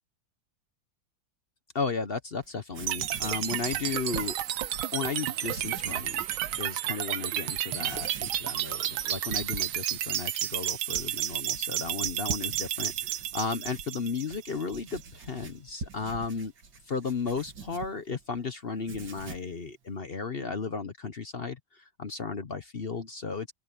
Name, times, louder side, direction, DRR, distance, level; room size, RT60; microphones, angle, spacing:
voice 1, 1.7-4.4 4.9-6.2 6.6-16.5 16.9-23.5, left 4 dB, 45° left, 0.8 m, -34 dB
Writing, 2.4-2.5 2.7-4.9 5.4-6.7 7.2-7.3 7.8-18.4 18.7-19.6, right 4 dB, 65° right, 2.9 m, -44 dB
sound 1, 2.9-14.9, right 12 dB, 85° right, 1.6 m, -32 dB
open air
omnidirectional pair, 2.2 m